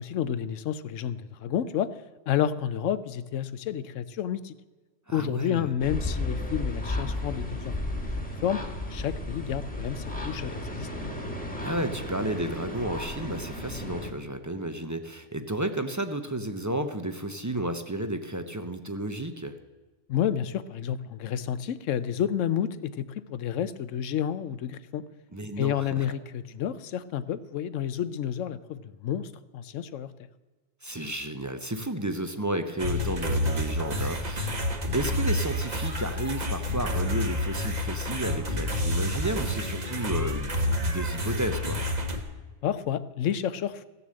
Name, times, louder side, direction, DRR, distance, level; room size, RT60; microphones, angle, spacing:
voice 1, 0.0-1.9 2.3-4.5 5.1-7.7 8.0-8.1 8.4-8.6 8.9-10.9 20.1-25.0 25.6-30.1 42.6-43.9, left 9 dB, 85° left, 15 dB, 1.0 m, -30 dB
voice 2, 5.1-5.7 11.6-19.5 25.3-26.1 30.8-34.6 34.9-40.5 40.9-41.8, right 1 dB, 20° right, 8 dB, 0.5 m, -32 dB
sound 1, 5.8-14.1, left 1 dB, 5° left, 1.3 m, -34 dB
sound 2, 32.8-42.2, left 1 dB, 35° right, 1.3 m, -29 dB
15.5 x 6.9 x 7.6 m, 1.2 s
omnidirectional pair, 1.3 m